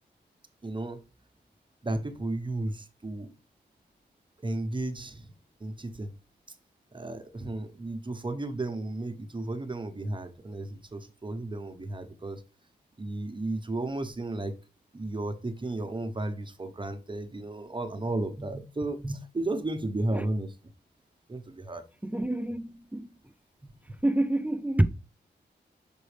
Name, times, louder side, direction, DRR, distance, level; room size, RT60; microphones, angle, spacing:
voice 1, 0.6-1.0 1.8-3.3 4.4-5.3 5.6-6.1 6.9-12.4 13.0-14.6 14.9-20.5 21.3-21.8 23.6-24.0, right 2 dB, 25° right, 1.0 m, -34 dB
voice 2, 22.0-23.1 24.0-24.9, right 1 dB, 10° right, 0.4 m, -27 dB
6.2 x 5.3 x 3.3 m
cardioid pair, 65°, 19 cm